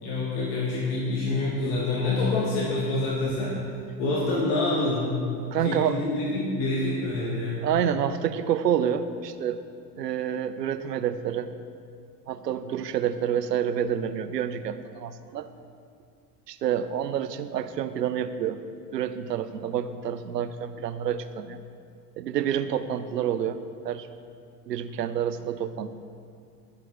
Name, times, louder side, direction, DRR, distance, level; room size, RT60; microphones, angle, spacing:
voice 1, 0.0-3.6 4.0-5.1 5.6-7.6, left 2 dB, 60° left, -5 dB, 2.5 m, -26 dB
voice 2, 5.5-6.0 7.6-9.6 10.0-11.5 12.3-15.5 16.5-18.6 18.9-21.6 22.2-23.6 23.8-24.1 24.7-25.9, right 9 dB, 90° right, 12 dB, 0.7 m, -28 dB
12.0 x 10.5 x 4.4 m, 2.3 s
hypercardioid pair, 85°, 48 cm